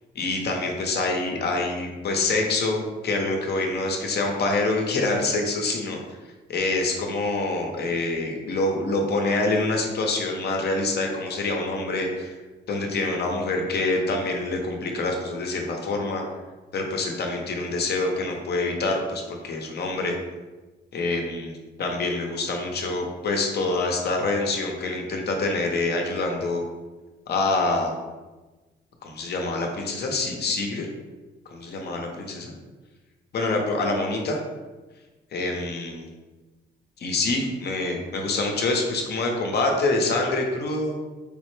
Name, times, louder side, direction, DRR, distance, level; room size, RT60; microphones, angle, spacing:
voice 1, 0.1-6.0 6.5-12.3 12.7-16.2 16.7-20.2 20.9-26.6 27.3-27.9 29.0-30.9 31.5-32.5 33.3-34.4 35.3-36.1 37.0-41.0, left 2 dB, 55° left, 2 dB, 0.7 m, -26 dB
4.7 x 2.1 x 3.1 m, 1.2 s
cardioid pair, 90°, 20 cm